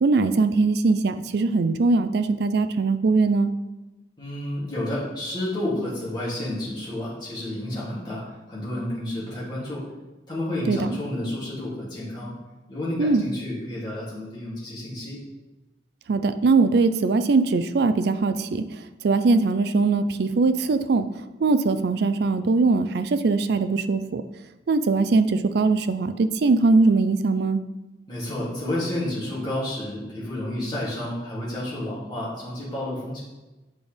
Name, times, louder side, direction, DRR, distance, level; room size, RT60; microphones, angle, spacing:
voice 1, 0.0-3.5 10.7-10.9 13.0-13.2 16.1-18.6 19.0-21.1 21.4-24.2 24.7-27.6, right 3 dB, 65° right, 10 dB, 0.4 m, -21 dB
voice 2, 4.2-8.2 8.5-9.8 10.3-12.3 12.7-15.2 28.1-33.2, left 1 dB, 25° left, -8 dB, 2.6 m, -30 dB
8.3 x 5.2 x 3.4 m, 1.1 s
head